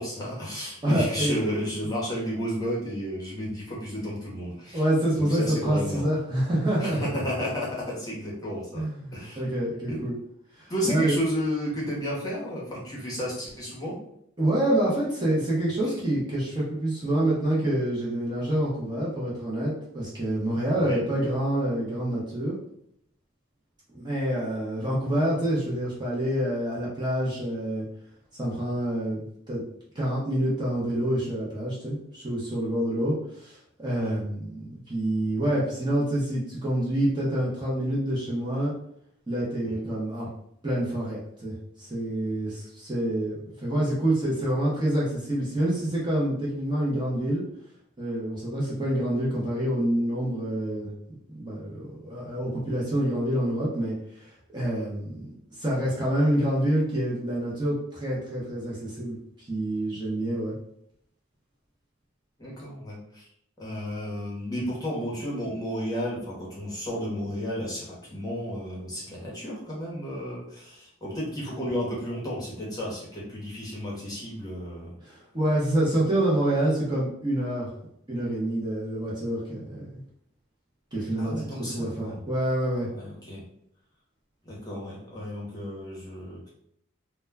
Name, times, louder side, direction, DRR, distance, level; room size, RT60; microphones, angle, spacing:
voice 1, 0.0-4.8 5.1-6.0 6.8-8.8 9.1-9.4 9.9-10.0 10.7-14.0 20.8-21.0 34.0-34.2 39.6-39.9 62.4-63.2 63.6-75.0 81.2-82.2 82.9-83.4 84.4-86.5, equal, 15° left, -5 dB, 0.7 m, -32 dB
voice 2, 0.8-1.3 4.7-7.0 8.7-10.1 10.6-11.2 14.4-22.6 23.9-27.8 28.4-29.6 29.9-38.7 39.3-40.3 40.6-47.4 48.0-50.9 51.3-55.3 55.6-59.2 59.5-60.5 75.0-77.7 78.1-80.0 80.9-82.9, right 1 dB, 20° right, -6 dB, 0.6 m, -27 dB
2.1 x 2.1 x 3.3 m, 0.72 s
head